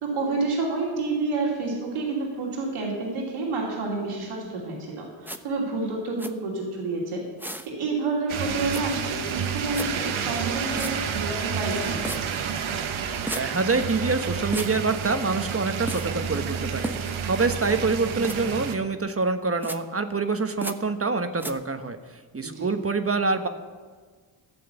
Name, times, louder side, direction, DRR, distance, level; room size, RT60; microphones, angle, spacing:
voice 1, 0.0-7.2 7.7-12.2 22.4-22.7, right 3 dB, 90° right, -2 dB, 2.9 m, -29 dB
sound 1, 5.2-5.4 6.2-6.3 7.4-7.7 8.7-8.8 9.7-9.9 10.8-10.9 12.0-12.2 13.3-13.4 14.5-14.7 15.9-16.1 16.8-17.2 18.2-18.4 19.6-19.8 20.6-20.8 21.4-21.5, right 1 dB, 5° right, 0.9 m, -33 dB
sound 2, 8.3-18.8, right 7 dB, 75° right, 1.1 m, -30 dB
voice 2, 13.3-16.9 17.3-22.0 22.3-23.5, right 3 dB, 30° right, 8 dB, 1.2 m, -26 dB
14.0 x 7.7 x 7.1 m, 1.5 s
supercardioid pair, 50°, 49 cm